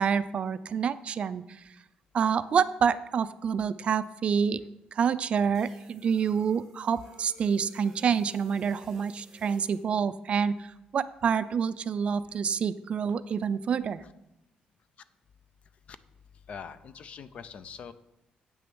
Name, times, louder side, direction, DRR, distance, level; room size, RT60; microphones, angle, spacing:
voice 1, 0.0-1.6 2.1-4.6 4.9-14.0, right 7 dB, 40° right, 14 dB, 0.3 m, -27 dB
sound 1, 5.5-9.9, right 1 dB, 10° right, 2.2 m, -56 dB
voice 2, 16.5-17.9, left 6 dB, 45° left, 14 dB, 0.5 m, -43 dB
8.6 x 6.3 x 6.1 m, 0.88 s
cardioid pair, 165°, 3 cm